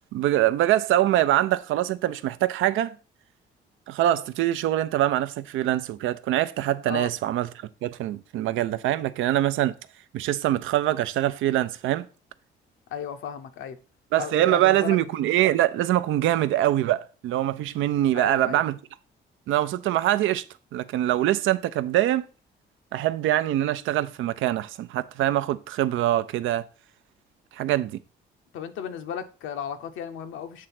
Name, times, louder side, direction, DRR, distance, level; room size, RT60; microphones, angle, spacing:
voice 1, 0.1-2.9 3.9-7.5 7.8-9.8 10.1-12.1 14.1-18.8 19.5-20.4 20.7-22.3 22.9-26.7 27.5-28.0, right 13 dB, 85° right, 0.5 m, -24 dB
voice 2, 12.9-13.8 14.2-15.0 18.1-18.6 28.5-30.7, left 8 dB, 80° left, 0.8 m, -35 dB
7.5 x 3.4 x 5.8 m
cardioid pair, 90°, 20 cm